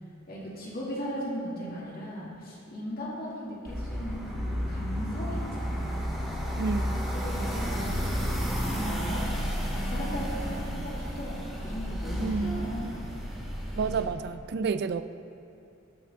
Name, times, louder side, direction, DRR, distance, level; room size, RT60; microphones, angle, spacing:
voice 1, 0.3-6.1 7.1-7.9 8.4-9.3 9.7-13.0, equal, 45° left, -6 dB, 2.2 m, -37 dB
sound 1, 3.7-14.0, equal, ahead, 1.8 m, -32 dB
voice 2, 6.6-7.1 12.2-12.8 13.7-15.0, right 5 dB, 55° right, 12 dB, 0.3 m, -30 dB
14.0 x 6.1 x 3.5 m, 2.8 s
head